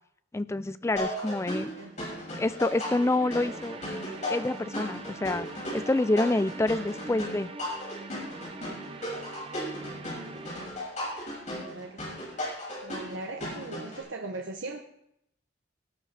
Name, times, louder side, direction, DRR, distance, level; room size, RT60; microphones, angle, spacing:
voice 1, 0.3-1.7 2.4-3.8 4.3-7.5, left 2 dB, 15° left, 14 dB, 0.3 m, -27 dB
sound 1, 1.0-14.0, left 1 dB, 40° left, 6.4 m, -36 dB
voice 2, 1.3-2.1 9.0-10.4 11.6-12.2 12.8-14.8, right 2 dB, 80° right, 2 dB, 0.9 m, -41 dB
sound 2, 2.7-10.7, right 3 dB, 30° right, 0.6 m, -43 dB
18.5 x 10.0 x 3.4 m, 0.75 s
head